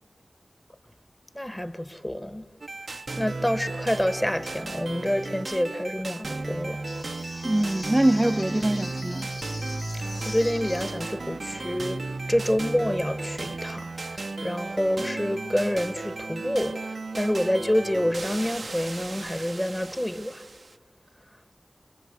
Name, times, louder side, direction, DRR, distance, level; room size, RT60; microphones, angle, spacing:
voice 1, 1.3-2.4 3.2-6.8 10.2-12.0 12.3-16.7 17.1-20.4, equal, 15° left, 1.5 m, -27 dB
sound 1, 2.6-20.7, right 3 dB, 70° right, 0.8 m, -35 dB
sound 2, 6.8-11.2, left 2 dB, 85° left, 4.0 m, -42 dB
voice 2, 7.4-9.3, right 1 dB, 20° right, 0.8 m, -23 dB
23.5 x 23.0 x 8.2 m
wide cardioid pair, 70°, 0 cm